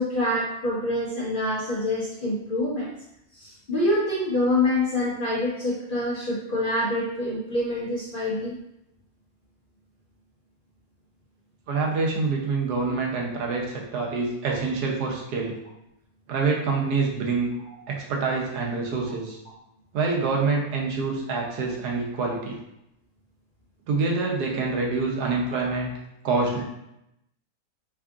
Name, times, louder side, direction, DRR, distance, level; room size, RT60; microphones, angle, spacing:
voice 1, 0.0-2.9 3.3-8.6 25.2-25.3, left 1 dB, 45° left, -6 dB, 0.7 m, -26 dB
voice 2, 11.7-15.6 16.3-17.5 17.9-19.4 19.9-22.6 23.9-25.9 26.2-26.6, right 4 dB, 90° right, -1 dB, 1.3 m, -26 dB
3.5 x 2.4 x 3.5 m, 0.83 s
omnidirectional pair, 1.7 m